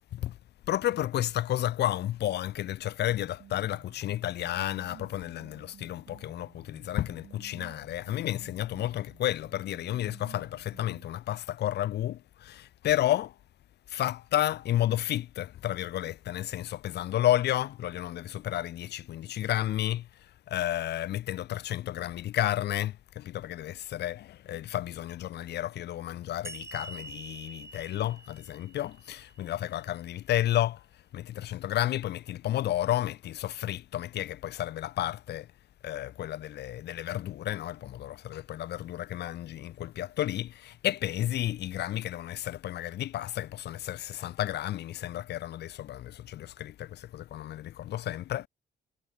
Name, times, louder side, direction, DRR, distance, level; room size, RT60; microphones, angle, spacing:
voice 1, 0.7-13.3 13.9-20.1 20.5-30.8 31.1-35.5 35.8-48.5, left 13 dB, 75° left, 2.8 m, -31 dB
sound 1, 3.1-11.1, right 10 dB, 70° right, 5.4 m, -54 dB
sound 2, 26.4-29.8, right 2 dB, 15° right, 4.6 m, -46 dB
cardioid pair, 85°, 17 cm